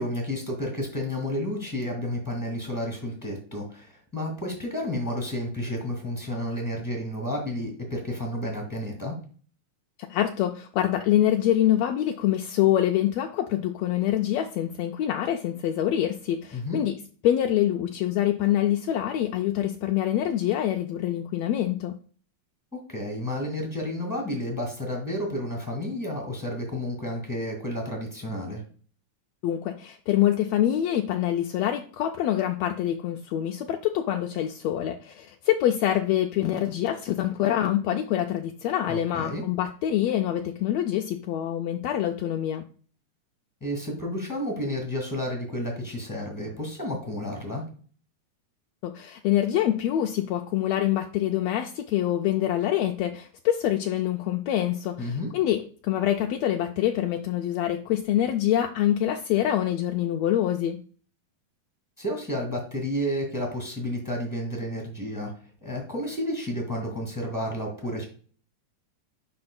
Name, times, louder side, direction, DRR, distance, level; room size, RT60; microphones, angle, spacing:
voice 1, 0.0-9.2 16.5-16.8 22.7-28.6 38.9-39.4 43.6-47.6 55.0-55.3 62.0-65.3 65.6-68.0, left 1 dB, 10° left, 0 dB, 1.2 m, -31 dB
voice 2, 10.1-16.9 17.2-21.9 29.4-42.7 48.8-60.8, left 12 dB, 85° left, 4 dB, 1.5 m, -25 dB
11.0 x 4.3 x 2.2 m, 0.42 s
omnidirectional pair, 3.5 m